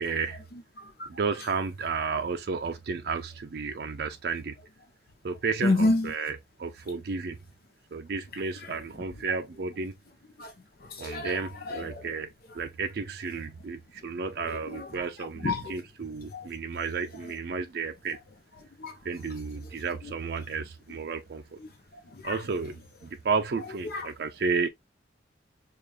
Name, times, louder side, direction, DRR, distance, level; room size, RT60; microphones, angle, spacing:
voice 1, 0.0-0.4 1.1-4.6 5.2-7.4 7.9-9.9 11.0-18.2 19.0-21.6 22.2-22.8 23.0-24.7, right 4 dB, 60° right, 0.4 m, -32 dB
voice 2, 0.5-1.1 5.6-6.1 8.6-8.7 10.4-10.5 10.8-12.1 14.4-15.1 15.4-15.7 16.3-16.5 18.8-19.0 20.0-20.1 22.1-22.4 23.8-24.1, left 2 dB, 55° left, 0.8 m, -30 dB
5.0 x 2.4 x 2.3 m
head